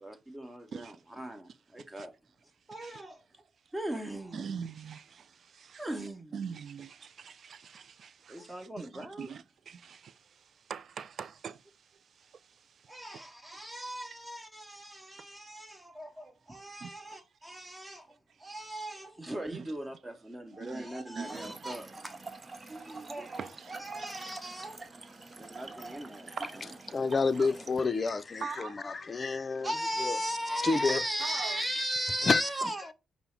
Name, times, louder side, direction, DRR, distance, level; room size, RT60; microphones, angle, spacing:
voice 1, 0.0-2.1 2.7-3.2 3.7-4.4 5.8-6.3 8.3-9.3 12.9-22.2 22.9-23.5 23.8-24.8 25.4-26.3 29.6-32.9, right 1 dB, 15° right, 1.1 m, -38 dB
voice 2, 0.7-1.0 1.5-2.1 2.5-3.0 3.6-3.7 4.3-13.3 14.9-15.4 16.6-17.2 17.5-17.7 18.3-18.6 19.5-19.7 20.5-21.5 22.6-24.3 25.1-27.5 28.4-29.3 30.8-31.7 32.6-32.7, right 6 dB, 65° right, 0.4 m, -45 dB
Trickle dribble / Fill (with liquid), 21.2-27.9, right 3 dB, 35° right, 0.7 m, -46 dB
voice 3, 26.9-29.7 30.0-30.2 30.6-31.0 32.2-32.4, left 4 dB, 40° left, 0.5 m, -29 dB
5.3 x 2.0 x 4.4 m
cardioid pair, 75°, 0 cm